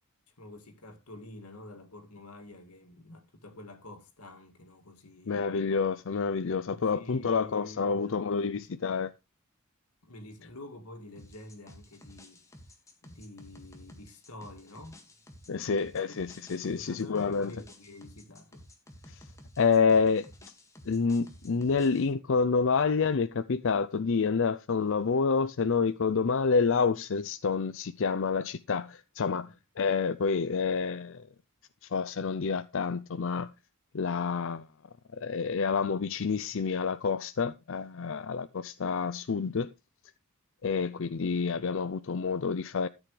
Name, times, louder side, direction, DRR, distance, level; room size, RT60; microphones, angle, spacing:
voice 1, 0.4-5.4 6.7-8.2 8.5-8.7 10.0-12.4 13.0-15.0 15.4-16.1 16.7-18.6 29.4-29.6, left 1 dB, 90° left, 2.3 m, -48 dB
voice 2, 5.3-9.1 15.5-17.5 19.1-19.2 19.6-20.2 20.9-31.2 31.9-33.5 33.9-34.7 35.2-39.7 40.6-42.9, left 5 dB, 60° left, 0.5 m, -28 dB
sound 1, 11.2-22.1, left 1 dB, 15° left, 1.9 m, -53 dB
13.5 x 8.3 x 3.3 m
head